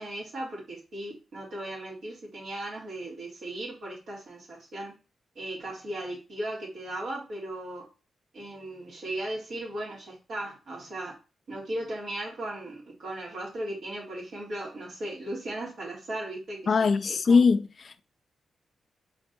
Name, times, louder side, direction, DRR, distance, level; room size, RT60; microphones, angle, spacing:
voice 1, 0.0-4.9 5.4-7.8 8.3-11.1 11.5-17.5, right 1 dB, 70° right, 3.9 m, -37 dB
voice 2, 16.7-18.0, left 5 dB, 55° left, 0.5 m, -22 dB
5.7 x 4.1 x 4.3 m
supercardioid pair, 45°, 0 cm